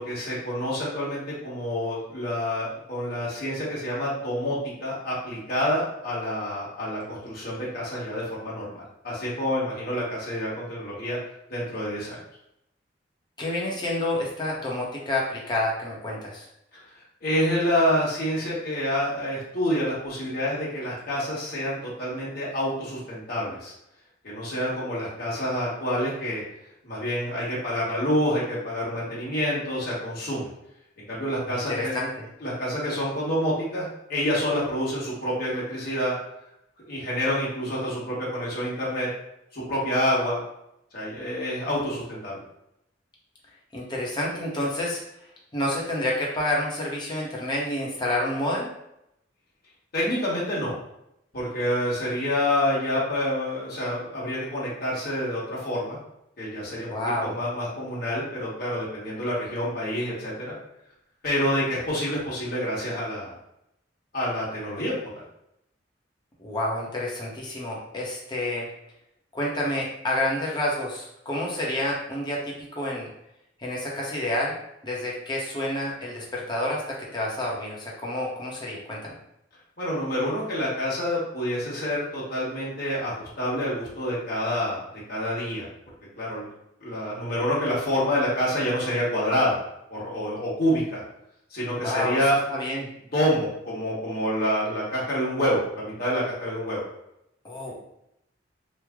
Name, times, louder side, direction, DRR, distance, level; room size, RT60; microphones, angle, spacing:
voice 1, 0.0-11.2 11.5-12.2 17.2-23.7 24.2-26.4 26.8-30.5 31.1-31.9 32.4-36.2 36.9-39.1 39.5-40.4 40.9-42.4 49.9-50.7 51.3-56.0 56.4-56.9 57.2-60.5 61.2-63.3 64.1-65.1 79.8-84.8 85.1-85.7 86.2-86.5 86.8-89.6 89.9-91.0 91.5-92.4 93.1-96.8, equal, 55° left, -7 dB, 1.2 m, -27 dB
voice 2, 13.4-16.5 31.5-32.3 43.7-45.0 45.5-48.7 56.9-57.4 66.4-68.7 69.3-73.1 73.6-74.6 74.8-79.1 91.8-92.2 92.5-92.9 97.4-97.7, left 1 dB, 25° left, -3 dB, 0.8 m, -29 dB
3.1 x 2.1 x 3.5 m, 0.80 s
head